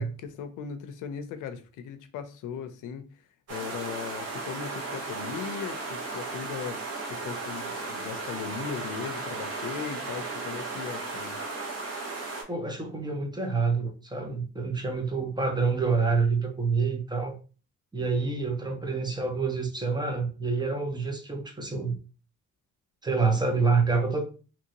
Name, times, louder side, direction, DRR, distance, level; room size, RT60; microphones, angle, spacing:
voice 1, 0.0-3.2 3.5-11.4, left 7 dB, 85° left, 0.5 m, -38 dB
sound 1, 3.5-12.4, right 3 dB, 55° right, 1.2 m, -35 dB
voice 2, 12.5-17.4 17.9-22.0 23.0-24.3, right 4 dB, 15° right, 0.7 m, -27 dB
2.9 x 2.6 x 2.8 m
cardioid pair, 90°, 30 cm